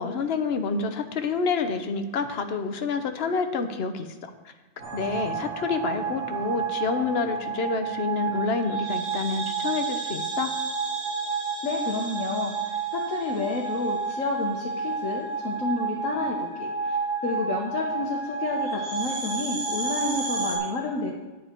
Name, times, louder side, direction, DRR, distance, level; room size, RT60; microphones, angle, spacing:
voice 1, 0.0-4.3 4.9-10.6, left 5 dB, 55° left, 7 dB, 1.1 m, -28 dB
sound 1, 4.8-20.6, right 5 dB, 75° right, 2.8 m, -30 dB
voice 2, 11.6-17.0 17.2-21.1, left 3 dB, 75° left, -1 dB, 1.5 m, -30 dB
9.5 x 9.3 x 4.5 m, 1.2 s
omnidirectional pair, 1.4 m